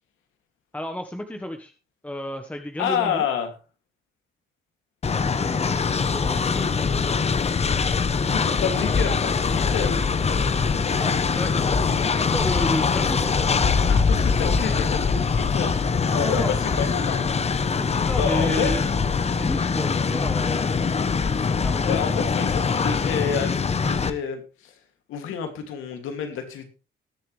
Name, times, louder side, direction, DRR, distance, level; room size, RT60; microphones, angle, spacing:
voice 1, 0.7-1.7 2.0-3.3 5.1-6.9 10.9-13.5 16.1-16.6 17.6-18.9 19.2-20.7 21.6-21.9 22.2-22.3, left 1 dB, 5° left, 4 dB, 1.4 m, -32 dB
voice 2, 2.8-3.5 5.9-6.0 8.3-10.0 13.9-17.7 18.2-18.8 21.8-24.7 25.1-26.7, left 7 dB, 90° left, 6 dB, 2.6 m, -29 dB
Train, 5.0-24.1, left 5 dB, 30° left, 0.9 m, -23 dB
19.5 x 7.5 x 3.3 m, 0.33 s
cardioid pair, 90°, 20 cm